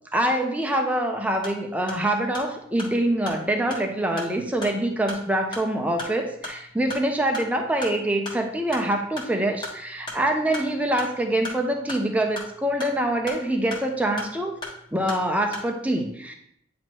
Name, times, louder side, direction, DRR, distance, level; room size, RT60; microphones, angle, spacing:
voice 1, 0.1-14.5 14.9-16.3, right 1 dB, 5° right, 2 dB, 0.7 m, -25 dB
sound 1, 1.2-15.7, left 2 dB, 25° left, 1.4 m, -39 dB
9.3 x 3.1 x 4.5 m, 0.71 s
head